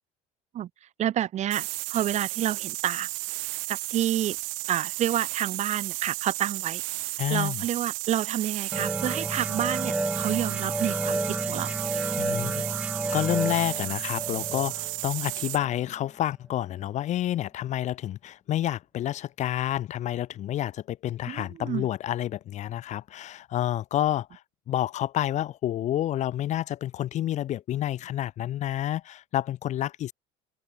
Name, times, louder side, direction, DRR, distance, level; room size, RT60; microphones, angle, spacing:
voice 1, 1.0-3.1 3.5-4.4 4.7-6.8 7.3-11.8 21.3-21.9, right 11 dB, 45° right, 0.7 m, -29 dB
sound 1, 1.5-15.6, right 33 dB, 80° right, 2.0 m, -33 dB
voice 2, 7.2-7.6 12.2-12.6 13.1-24.4 24.7-30.1, left 12 dB, 45° left, 0.6 m, -29 dB
sound 2, 8.7-16.0, right 2 dB, 5° right, 1.3 m, -31 dB
open air
supercardioid pair, 100°, 17 cm